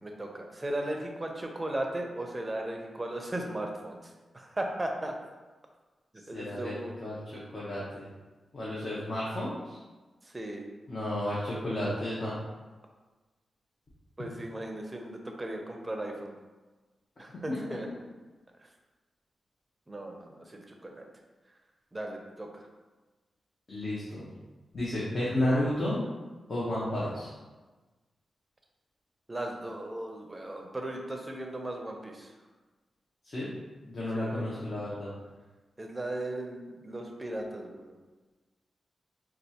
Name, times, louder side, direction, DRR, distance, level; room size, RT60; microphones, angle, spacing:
voice 1, 0.0-5.2 6.3-7.0 10.2-10.7 14.2-16.3 17.2-17.9 19.9-21.1 21.9-22.7 29.3-32.3 34.1-34.6 35.8-38.0, right 1 dB, 20° right, 2 dB, 0.6 m, -37 dB
voice 2, 6.3-6.7 7.0-7.2 7.5-8.0 8.5-9.8 10.9-12.3 17.5-17.6 23.7-24.2 24.7-26.0 26.5-27.3 33.2-33.5 33.9-35.1, left 1 dB, 45° left, -8 dB, 0.9 m, -32 dB
4.5 x 2.4 x 2.8 m, 1.3 s
cardioid pair, 85°, 0 cm